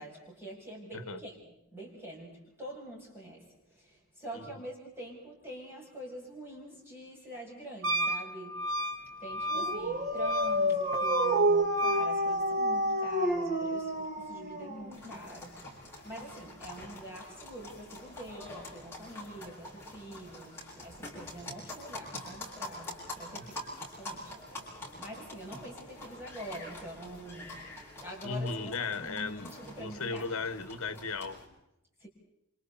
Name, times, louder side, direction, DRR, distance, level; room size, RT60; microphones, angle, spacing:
voice 1, 0.0-1.4 1.7-2.3 2.6-3.4 4.2-8.5 9.2-15.5 16.0-24.4 25.0-27.6 28.0-30.2 32.0-32.1, right 1 dB, 10° right, -4 dB, 7.3 m, -45 dB
Wind instrument woodwind instrument, 7.8-12.1, right 1 dB, 60° right, 1.3 m, -33 dB
Dog, 9.5-15.2, right 1 dB, 35° right, 1.9 m, -29 dB
sound 1, 14.9-31.5, left 1 dB, 10° left, 6.6 m, -45 dB
voice 2, 28.2-29.5 29.8-31.4, left 4 dB, 60° left, 12 dB, 1.4 m, -36 dB
29.5 x 26.5 x 4.2 m, 0.82 s
head